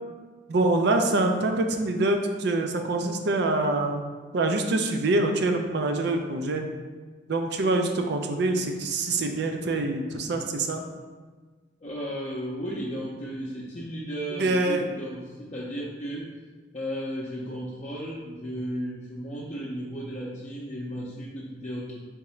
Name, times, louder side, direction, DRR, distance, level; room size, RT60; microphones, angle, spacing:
voice 1, 0.5-4.0 4.3-6.6 7.3-10.8 14.4-14.9, right 2 dB, 60° right, 5 dB, 0.4 m, -25 dB
voice 2, 11.8-16.3 16.7-22.0, equal, 40° left, -6 dB, 0.6 m, -34 dB
3.6 x 2.9 x 4.3 m, 1.4 s
head